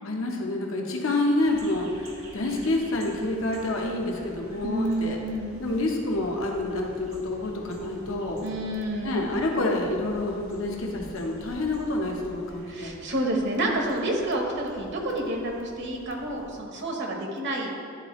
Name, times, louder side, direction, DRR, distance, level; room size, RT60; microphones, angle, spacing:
voice 1, 0.0-1.9 2.3-5.2 5.6-8.4 9.0-12.9, left 2 dB, 70° left, 1 dB, 0.9 m, -28 dB
sound 1, 1.4-16.6, right 1 dB, 85° right, 1.5 m, -48 dB
voice 2, 4.6-5.6 8.4-9.2 12.6-17.7, right 1 dB, 60° right, 1 dB, 1.0 m, -29 dB
10.5 x 3.9 x 3.1 m, 2.5 s
head